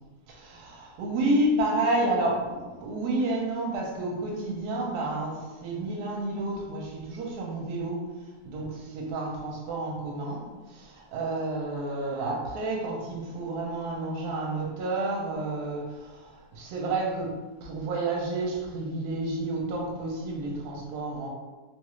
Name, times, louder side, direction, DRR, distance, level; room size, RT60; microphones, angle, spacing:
voice 1, 0.3-21.3, right 2 dB, 75° right, 0 dB, 1.1 m, -30 dB
3.2 x 2.3 x 3.0 m, 1.3 s
omnidirectional pair, 1.8 m